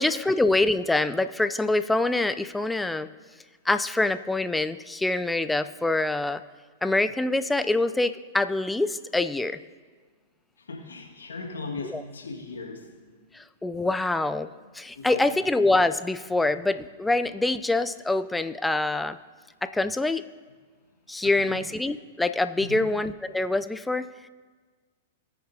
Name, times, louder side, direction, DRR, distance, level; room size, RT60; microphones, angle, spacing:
voice 1, 0.0-3.1 3.7-6.4 6.8-9.6 11.8-12.0 13.3-19.2 19.6-20.3 21.1-24.3, left 2 dB, 5° left, 12 dB, 0.3 m, -25 dB
voice 2, 10.6-12.9 14.6-15.4 21.2-21.6 22.6-22.8, left 3 dB, 90° left, 0 dB, 1.7 m, -38 dB
19.5 x 6.8 x 2.7 m, 1.5 s
hypercardioid pair, 115°, 0 cm